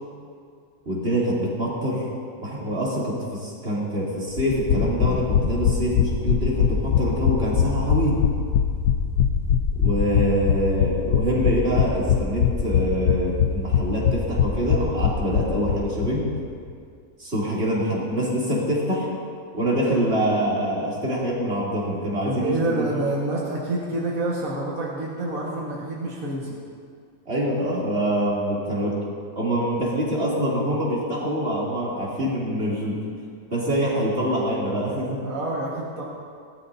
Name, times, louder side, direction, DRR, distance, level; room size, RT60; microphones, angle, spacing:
voice 1, 0.8-2.1 2.4-8.2 9.8-16.3 17.2-19.1 19.5-22.8 27.3-29.0 29.4-33.0 33.5-35.3, equal, 45° right, -6 dB, 3.4 m, -25 dB
sound 1, 4.4-16.1 16.4-16.5 16.7-16.8, left 8 dB, 85° left, 1.3 m, -22 dB
voice 2, 22.2-26.6 35.2-36.0, right 2 dB, 70° right, -5 dB, 2.1 m, -27 dB
20.0 x 12.5 x 2.8 m, 2.2 s
omnidirectional pair, 1.5 m